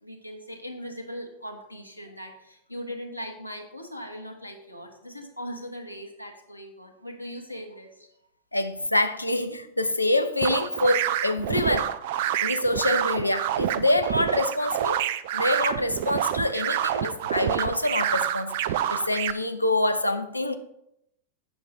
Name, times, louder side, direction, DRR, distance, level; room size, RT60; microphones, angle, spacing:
voice 1, 0.0-8.1, equal, 90° right, 1.2 m, -39 dB
voice 2, 8.5-12.0 12.4-15.0 15.3-20.5, left 1 dB, 85° left, 0.6 m, -26 dB
sound 1, 10.4-19.3, right 11 dB, 50° right, 0.4 m, -27 dB
8.4 x 6.3 x 4.2 m
figure-of-eight pair, 90°, 0 cm